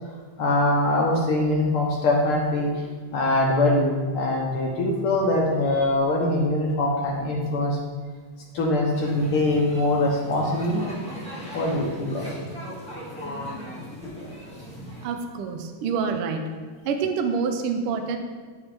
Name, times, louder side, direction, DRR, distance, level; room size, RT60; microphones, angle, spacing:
voice 1, 0.4-2.7 3.1-7.8 8.5-10.8 11.5-12.3, left 1 dB, 60° left, -1 dB, 1.5 m, -23 dB
sound 1, 8.9-15.0, equal, 5° left, 1.5 m, -37 dB
voice 2, 15.0-16.4 16.8-18.2, right 5 dB, 75° right, 5 dB, 1.2 m, -26 dB
13.5 x 4.9 x 3.5 m, 1.5 s
omnidirectional pair, 3.4 m